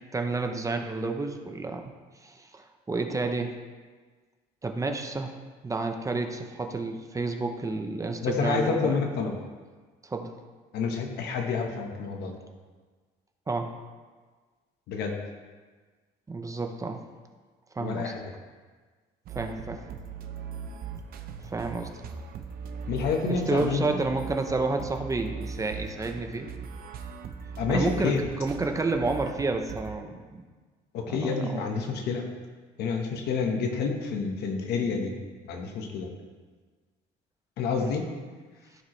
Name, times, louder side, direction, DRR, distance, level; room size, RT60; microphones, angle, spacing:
voice 1, 0.1-1.9 2.2-3.5 4.6-5.3 5.6-9.0 10.0-10.3 13.5-13.7 16.3-17.0 17.7-18.1 19.3-19.8 21.4-22.0 23.3-26.5 27.7-30.4 31.1-31.6 37.8-38.0, right 3 dB, 20° right, 5 dB, 0.7 m, -30 dB
voice 2, 8.2-9.3 10.7-12.4 14.9-15.2 17.8-18.2 22.9-24.0 27.6-28.3 30.9-32.3 32.8-35.1 35.5-36.1 37.6-38.1, left 5 dB, 75° left, 3 dB, 1.3 m, -28 dB
sound 1, 19.2-30.0, right 5 dB, 65° right, 0.8 m, -39 dB
14.5 x 4.8 x 3.2 m, 1.4 s
cardioid pair, 110°, 17 cm